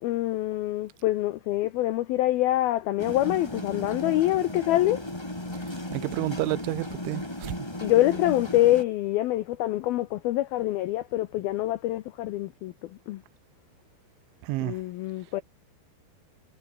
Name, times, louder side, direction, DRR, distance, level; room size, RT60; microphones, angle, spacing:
voice 1, 0.0-5.0 7.8-13.2 14.6-15.4, left 15 dB, 85° left, 2.1 m, -25 dB
sound 1, 3.0-8.8, left 1 dB, 10° left, 1.9 m, -35 dB
voice 2, 5.9-7.7 14.5-14.8, right 19 dB, 85° right, 3.2 m, -30 dB
omnidirectional pair, 5.4 m